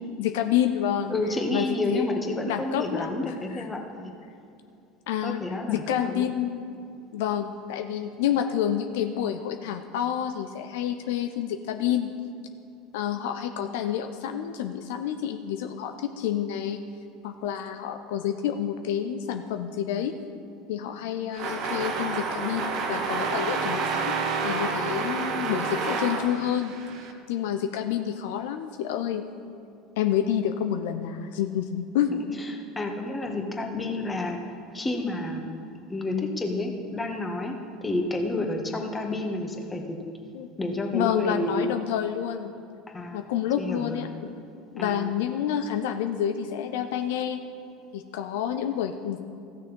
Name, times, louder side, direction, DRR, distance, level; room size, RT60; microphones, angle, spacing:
voice 1, 0.2-1.1 1.5-2.1 2.4-3.7 5.1-5.4 5.7-6.6 7.1-12.1 12.9-16.8 17.2-20.2 20.7-24.2 24.4-26.7 27.3-29.2 30.0-32.1 40.3-40.5 40.9-42.5 43.1-44.3 44.7-47.4 47.9-49.2, left 10 dB, 70° left, 7 dB, 0.5 m, -28 dB
voice 2, 1.1-4.1 5.2-6.3 32.1-34.4 34.7-35.4 35.9-40.0 40.6-41.7 42.9-43.2 43.6-44.0 44.8-45.1, left 2 dB, 15° left, 3 dB, 1.7 m, -30 dB
sound 1, 21.3-27.1, right 4 dB, 55° right, 1.2 m, -29 dB
15.5 x 6.6 x 5.3 m, 2.5 s
hypercardioid pair, 75°, 0 cm